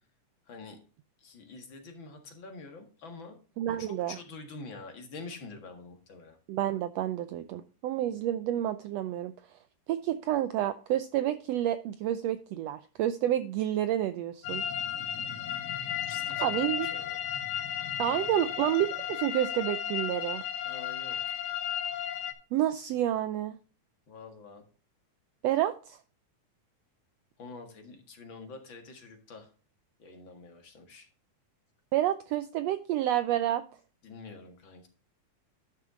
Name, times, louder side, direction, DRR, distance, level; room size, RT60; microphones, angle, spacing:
voice 1, 0.5-0.8 1.2-3.4 3.8-6.4 16.0-17.2 20.6-21.4 24.1-24.6 27.4-29.5 30.0-31.1 34.0-34.9, left 3 dB, 45° left, 5 dB, 2.1 m, -46 dB
voice 2, 3.6-4.2 6.5-9.3 9.9-14.6 16.4-16.9 18.0-20.4 22.5-23.6 25.4-26.0 31.9-33.6, right 12 dB, 90° right, 12 dB, 1.4 m, -29 dB
sound 1, 14.4-22.3, left 9 dB, 85° left, 2.6 m, -34 dB
11.5 x 6.3 x 3.7 m, 0.37 s
omnidirectional pair, 3.6 m